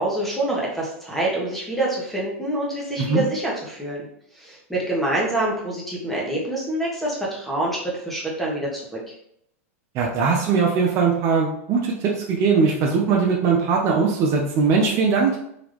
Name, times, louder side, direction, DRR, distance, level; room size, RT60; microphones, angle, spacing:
voice 1, 0.0-4.0 4.3-8.8, right 1 dB, ahead, -5 dB, 1.4 m, -26 dB
voice 2, 9.9-15.4, right 5 dB, 40° right, -1 dB, 0.7 m, -20 dB
3.9 x 2.9 x 3.4 m, 0.73 s
hypercardioid pair, 125°, 8 cm